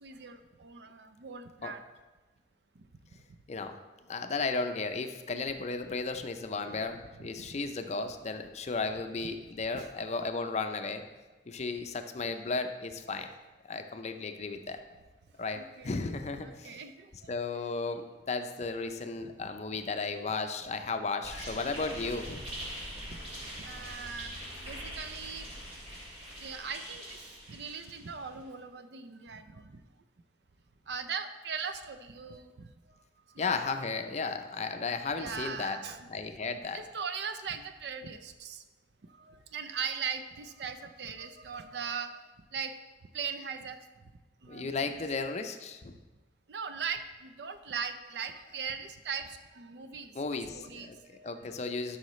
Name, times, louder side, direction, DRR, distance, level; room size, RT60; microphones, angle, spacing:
voice 1, 0.0-1.8 7.2-7.5 9.7-9.9 15.5-15.9 16.4-17.1 19.2-19.3 21.6-21.8 23.6-24.3 24.6-25.5 26.4-27.2 27.5-29.7 30.9-32.5 35.2-36.1 36.7-38.6 39.2-42.1 42.5-42.7 43.1-43.8 44.4-45.0 46.5-51.6, right 6 dB, 70° right, 9 dB, 0.5 m, -39 dB
voice 2, 4.1-11.0 11.5-13.3 13.7-14.8 15.4-16.8 17.1-22.4 33.4-35.8 36.1-36.8 44.5-45.9 48.5-48.7 50.1-52.0, left 4 dB, 40° left, 7 dB, 0.5 m, -34 dB
sound 1, 21.2-28.3, equal, 35° right, 2.4 m, -43 dB
11.5 x 5.7 x 3.1 m, 1.2 s
head